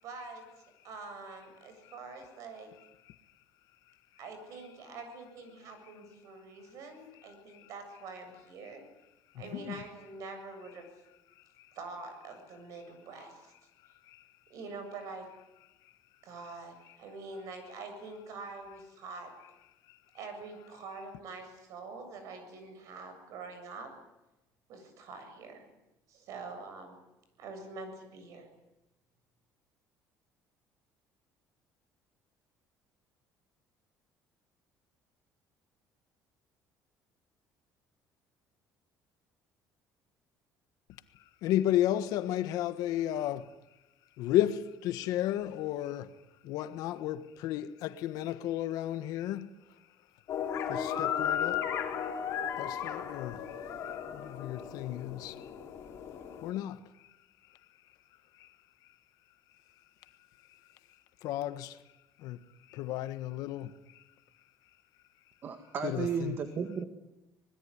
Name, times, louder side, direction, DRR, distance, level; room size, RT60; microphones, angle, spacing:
voice 1, 0.0-0.5 0.8-2.7 4.2-8.8 9.3-10.9 11.8-13.5 14.5-15.3 16.2-19.3 20.1-23.9 24.7-25.7 26.1-27.0 27.4-28.5, right 3 dB, 55° right, 7.5 m, -45 dB
voice 2, 9.4-9.8 41.4-43.5 44.2-46.1 46.4-49.5 50.7-51.6 52.6-53.4 54.1-55.3 56.4-56.8 61.2-61.8 62.2-62.4 62.7-63.7 65.8-66.4, left 13 dB, 70° left, 1.4 m, -32 dB
sound 1, 50.3-56.5, left 8 dB, 45° left, 3.4 m, -35 dB
voice 3, 65.4-66.8, right 6 dB, 35° right, 1.8 m, -34 dB
25.5 x 20.5 x 10.0 m
cardioid pair, 180°, 7 cm